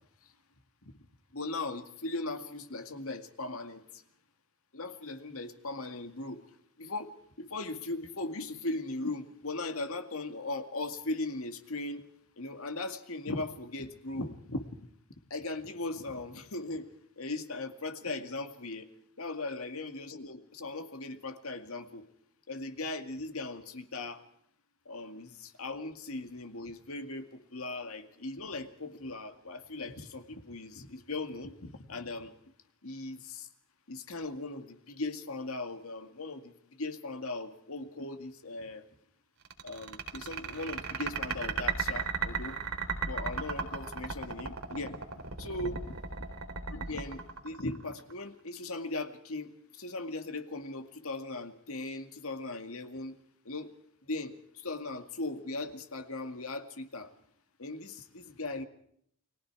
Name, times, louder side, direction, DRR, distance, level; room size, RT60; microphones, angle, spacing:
voice 1, 1.3-3.8 4.7-6.4 6.8-7.1 7.4-12.0 12.4-14.7 15.3-16.9 17.2-18.9 19.2-22.0 22.5-24.2 24.9-32.3 32.8-33.5 33.9-38.9 39.6-42.6 43.1-45.0 45.4-45.9 46.7-53.2 53.5-53.7 54.1-57.1 57.6-58.6, left 2 dB, 70° left, 7 dB, 2.2 m, -38 dB
sound 1, 39.4-48.1, right 5 dB, 80° right, 3.8 m, -35 dB
30.0 x 21.5 x 4.8 m, 0.69 s
head